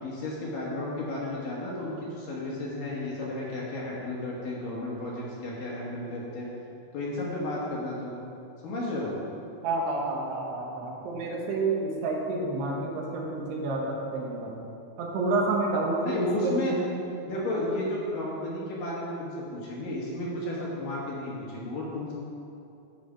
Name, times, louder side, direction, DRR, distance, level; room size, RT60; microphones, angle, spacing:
voice 1, 0.0-6.5 6.9-8.2 8.6-9.1 16.0-16.7 17.3-22.1, left 2 dB, 65° left, -5 dB, 2.2 m, -33 dB
voice 2, 9.6-14.6 15.0-16.9, right 2 dB, 70° right, -2 dB, 2.9 m, -29 dB
14.0 x 4.9 x 5.1 m, 2.8 s
omnidirectional pair, 5.5 m